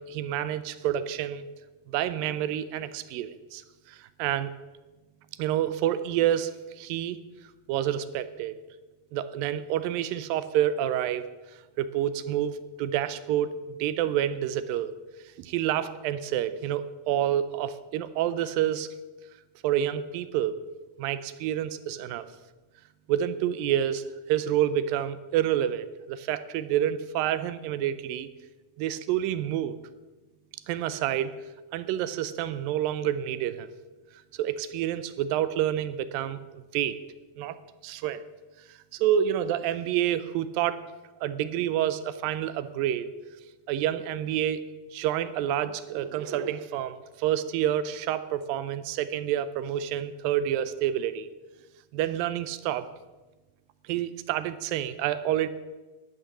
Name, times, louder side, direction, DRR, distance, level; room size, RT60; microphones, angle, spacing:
voice 1, 0.0-1.5 1.9-3.6 3.9-4.5 5.4-7.2 7.7-8.6 9.1-11.3 11.8-14.9 15.4-18.9 19.6-20.6 21.0-22.3 23.1-28.3 28.8-29.8 30.7-31.4 31.7-33.7 34.3-36.4 36.7-37.0 37.4-37.6 37.8-38.2 38.9-40.9 41.2-43.1 43.7-44.6 44.9-51.3 51.9-52.9 53.9-55.5, right 11 dB, 80° right, 13 dB, 2.2 m, -28 dB
12.5 x 10.5 x 6.1 m, 1.2 s
omnidirectional pair, 4.3 m